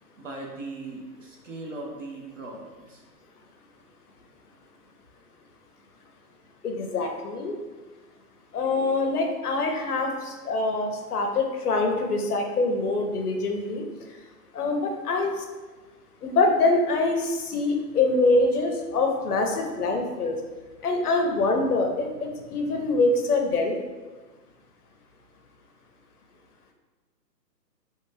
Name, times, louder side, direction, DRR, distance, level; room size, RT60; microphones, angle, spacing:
voice 1, 0.2-3.0, right 2 dB, 50° right, -1 dB, 0.5 m, -39 dB
voice 2, 6.6-7.5 8.5-13.8 14.5-15.3 16.2-20.4 20.8-23.8, left 3 dB, 65° left, 3 dB, 0.6 m, -24 dB
2.6 x 2.1 x 3.2 m, 1.3 s
hypercardioid pair, 170°, 50 cm